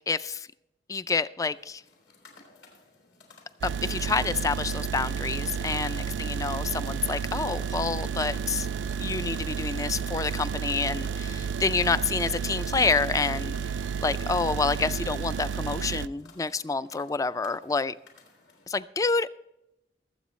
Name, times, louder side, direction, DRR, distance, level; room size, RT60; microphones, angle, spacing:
voice 1, 0.1-0.5 0.9-1.8 3.6-8.7 9.0-13.6 14.0-17.9 18.7-19.3, left 4 dB, 20° left, 16 dB, 0.3 m, -28 dB
sound 1, 1.5-18.8, left 3 dB, 70° left, 3.4 m, -56 dB
sound 2, 3.6-16.1, right 6 dB, 90° right, 0.3 m, -31 dB
22.0 x 8.0 x 3.1 m, 0.90 s
head